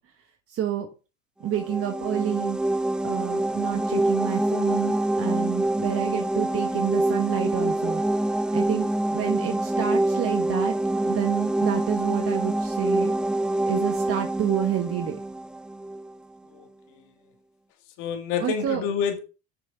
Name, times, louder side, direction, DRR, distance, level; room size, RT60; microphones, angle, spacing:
voice 1, 0.5-0.9 1.4-2.6 3.0-8.0 8.5-10.7 11.0-13.1 13.7-15.2 18.4-18.8, right 10 dB, 45° right, 1.3 m, -29 dB
sound 1, 1.5-16.1, right 1 dB, 5° right, 0.4 m, -26 dB
voice 2, 16.5-17.0 18.0-19.2, left 7 dB, 70° left, 1.7 m, -28 dB
6.7 x 6.2 x 4.5 m
supercardioid pair, 95°, 31 cm